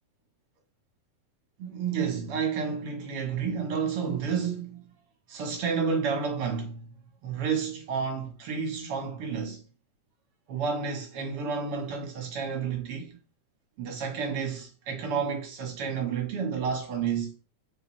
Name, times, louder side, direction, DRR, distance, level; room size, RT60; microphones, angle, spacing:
voice 1, 1.6-4.8 5.3-6.9 7.2-9.6 10.5-13.2 13.8-17.3, right 6 dB, 65° right, 1.5 m, -30 dB
4.8 x 3.6 x 3.1 m
omnidirectional pair, 3.6 m